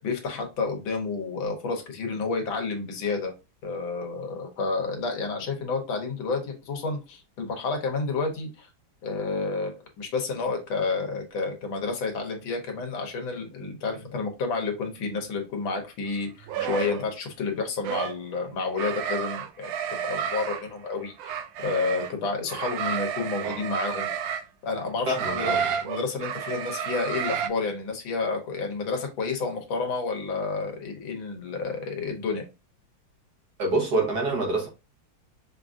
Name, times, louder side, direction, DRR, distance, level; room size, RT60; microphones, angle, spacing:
voice 1, 0.0-3.3 3.6-8.7 9.0-21.4 21.6-24.1 24.6-32.5, left 4 dB, 85° left, 1.8 m, -30 dB
sound 1, 16.4-17.0 17.8-18.2 18.8-20.6 21.2-22.1 22.5-24.4 25.1-27.5, right 8 dB, 75° right, 1.2 m, -30 dB
voice 2, 25.1-25.7 33.6-34.7, right 2 dB, 60° right, 1.5 m, -26 dB
5.6 x 2.5 x 2.4 m
omnidirectional pair, 2.1 m